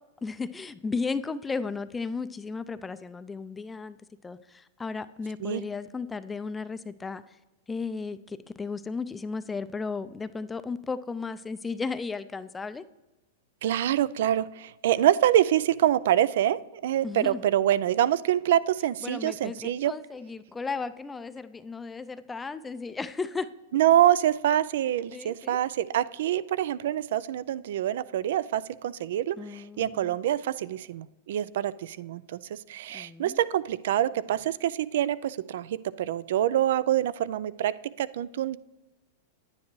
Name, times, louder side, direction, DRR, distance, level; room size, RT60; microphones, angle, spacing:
voice 1, 0.2-4.0 4.2-7.4 7.7-12.8 17.0-17.4 19.0-23.5 25.1-25.6 29.4-30.2 32.9-33.4, left 4 dB, 15° left, 0.4 m, -35 dB
voice 2, 13.6-19.9 23.7-38.6, right 11 dB, 70° right, 0.3 m, -26 dB
10.0 x 9.6 x 3.1 m
hypercardioid pair, 115°, 0 cm